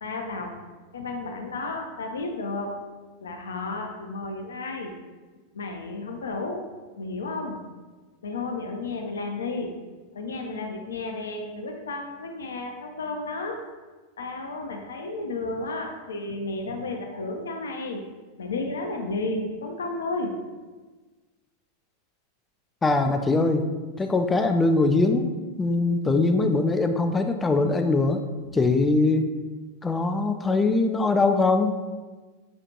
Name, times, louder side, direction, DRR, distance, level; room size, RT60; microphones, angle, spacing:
voice 1, 0.0-0.6 0.9-2.8 3.2-4.9 5.5-6.7 7.0-7.6 8.2-9.9 10.1-13.7 14.2-18.1 18.4-20.4, left 2 dB, 70° left, 3 dB, 0.5 m, -32 dB
voice 2, 22.8-23.7 24.0-25.3 25.6-28.2 28.5-29.3 29.8-31.8, left 3 dB, 15° left, 6 dB, 0.3 m, -22 dB
5.1 x 2.4 x 2.9 m, 1.3 s
figure-of-eight pair, 90°, 0 cm